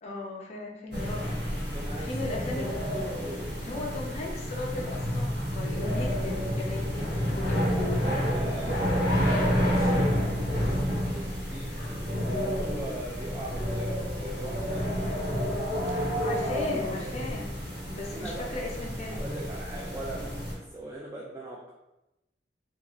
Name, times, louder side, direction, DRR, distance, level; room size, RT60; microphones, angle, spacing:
voice 1, 0.0-1.4 2.0-2.7 3.6-8.0 15.9-17.5 17.9-19.2, left 2 dB, 40° left, -1 dB, 0.5 m, -37 dB
sound 1, 0.9-20.5, equal, 75° right, 0.9 m, -29 dB
voice 2, 1.7-2.8 3.2-3.5 7.8-11.7 12.2-14.9 18.0-18.5 19.1-21.7, right 1 dB, 20° right, -4 dB, 0.3 m, -41 dB
2.5 x 2.3 x 2.9 m, 0.96 s
head